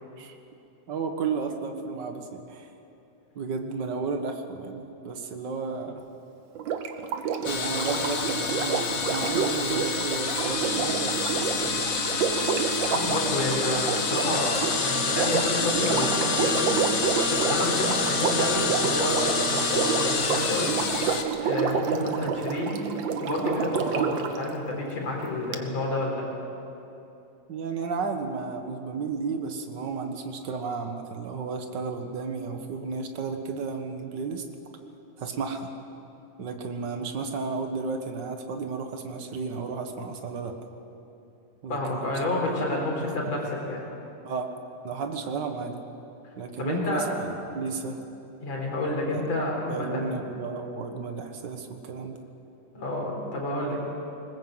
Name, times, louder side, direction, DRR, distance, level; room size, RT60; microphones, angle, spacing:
voice 1, 0.9-2.7 3.3-6.0 7.4-11.8 24.0-24.1 27.5-34.4 35.2-35.7 36.4-40.5 41.6-42.2 42.4-43.1 44.2-44.5 44.8-45.8 46.4-48.0 49.1-49.2 49.7-52.2, right 4 dB, 45° right, 5 dB, 1.6 m, -33 dB
Sink (filling or washing), 6.5-24.4 25.5-25.6, right 6 dB, 80° right, 1.0 m, -29 dB
sound 1, 7.4-21.2, left 5 dB, 90° left, 0.7 m, -28 dB
voice 2, 12.9-16.8 17.3-20.7 21.4-22.8 23.2-26.2 41.7-43.8 46.6-47.1 48.4-50.2 52.7-53.8, left 2 dB, 55° left, -1 dB, 5.3 m, -29 dB
20.5 x 20.0 x 8.0 m, 2.9 s
omnidirectional pair, 3.6 m